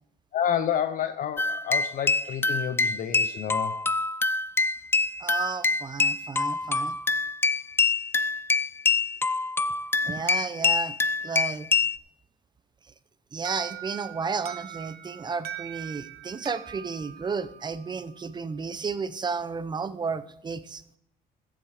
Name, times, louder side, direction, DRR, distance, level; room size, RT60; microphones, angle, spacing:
voice 1, 0.3-3.8, left 9 dB, 55° left, 10 dB, 0.7 m, -29 dB
sound 1, 1.4-12.0, left 4 dB, 15° left, 0.4 m, -25 dB
voice 2, 5.2-7.0 10.0-10.9 11.2-11.7 13.3-20.8, right 5 dB, 25° right, 14 dB, 0.7 m, -32 dB
Alarm, 13.5-18.2, right 12 dB, 70° right, 1.0 m, -41 dB
14.5 x 7.7 x 4.9 m, 0.72 s
cardioid pair, 110°, 17 cm